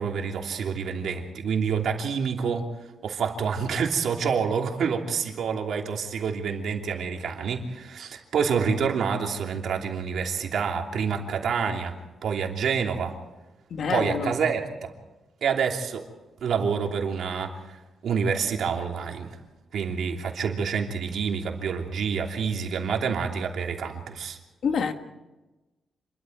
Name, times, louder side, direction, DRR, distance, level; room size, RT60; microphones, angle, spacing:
voice 1, 0.0-2.7 3.0-12.0 12.2-13.2 13.9-14.9 15.4-16.1 16.4-19.4 19.7-24.4, right 6 dB, 70° right, 2 dB, 3.0 m, -27 dB
voice 2, 13.7-14.3 24.6-24.9, left 6 dB, 60° left, 7 dB, 1.6 m, -26 dB
27.5 x 22.5 x 4.7 m, 1.1 s
wide cardioid pair, 155°, 0 cm